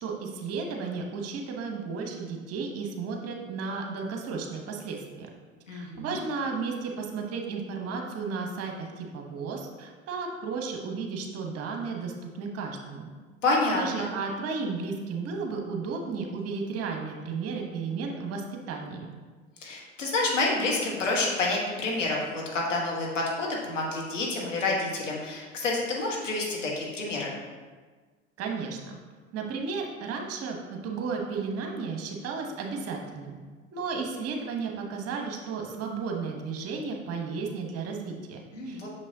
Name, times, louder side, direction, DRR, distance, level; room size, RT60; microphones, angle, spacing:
voice 1, 0.0-5.3 5.7-13.1 13.8-19.1 28.4-29.0 29.3-33.3 33.7-38.9, right 4 dB, 40° right, 2 dB, 1.1 m, -34 dB
voice 2, 5.7-6.2 13.4-14.1 19.6-27.3 38.5-38.9, left 2 dB, 90° left, -2 dB, 1.4 m, -28 dB
6.7 x 5.3 x 2.8 m, 1.4 s
hypercardioid pair, 80°, 36 cm